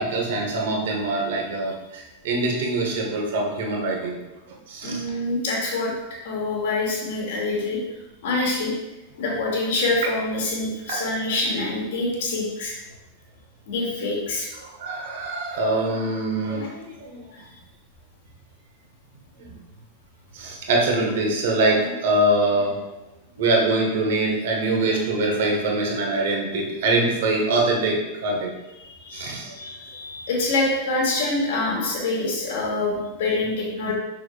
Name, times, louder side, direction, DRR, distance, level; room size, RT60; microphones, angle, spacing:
voice 1, 0.0-4.2 4.5-5.0 10.9-11.0 14.5-17.3 19.4-19.5 20.3-22.8 23.4-28.5 29.1-29.5, right 2 dB, 55° right, 0 dB, 1.5 m, -24 dB
voice 2, 4.8-5.9 6.2-7.8 8.2-8.7 9.2-12.8 13.7-14.5 29.0-33.9, left 2 dB, 55° left, -2 dB, 1.9 m, -25 dB
6.5 x 6.3 x 2.5 m, 1.0 s
figure-of-eight pair, 90°, 0 cm